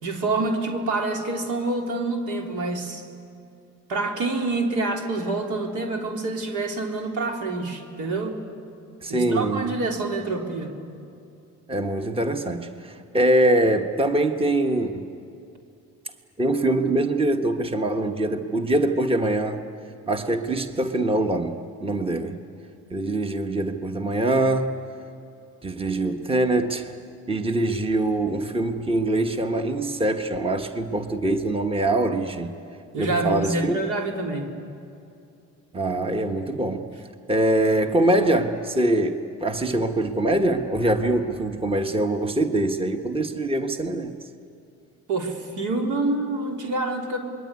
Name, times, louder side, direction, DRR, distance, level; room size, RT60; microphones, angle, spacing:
voice 1, 0.0-3.0 3.9-8.4 9.1-10.7 32.9-34.5 45.1-47.2, right 2 dB, 85° right, 2 dB, 3.4 m, -27 dB
voice 2, 9.0-9.7 11.7-15.1 16.4-19.6 20.1-22.4 22.9-24.8 25.6-26.9 27.3-32.5 33.0-33.8 35.7-36.9 37.3-44.1, right 1 dB, 20° right, 6 dB, 1.4 m, -23 dB
27.0 x 22.0 x 9.6 m, 2.6 s
cardioid pair, 90°, 30 cm